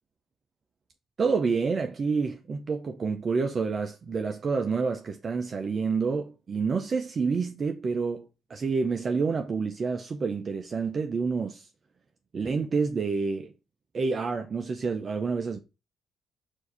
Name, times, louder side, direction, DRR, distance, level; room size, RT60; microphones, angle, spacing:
voice 1, 1.2-11.7 12.3-13.5 13.9-15.6, right 4 dB, 40° right, 0.5 m, -28 dB
4.5 x 2.6 x 4.1 m
cardioid pair, 90°, 0 cm